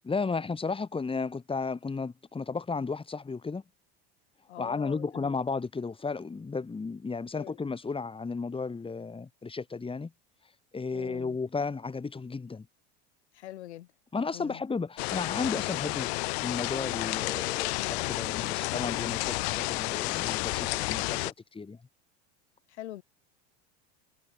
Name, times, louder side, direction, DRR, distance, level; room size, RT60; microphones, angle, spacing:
voice 1, 0.0-3.6 4.6-10.1 10.7-12.7 14.1-16.1 16.4-21.8, left 4 dB, 15° left, 4.7 m, -34 dB
voice 2, 4.5-5.4 7.3-7.6 10.9-11.4 13.3-13.9 14.3-14.6 17.1-17.2 22.7-23.0, left 14 dB, 85° left, 5.1 m, -43 dB
sound 1, 15.0-21.3, left 26 dB, 70° left, 5.2 m, -31 dB
supercardioid pair, 105°, 33 cm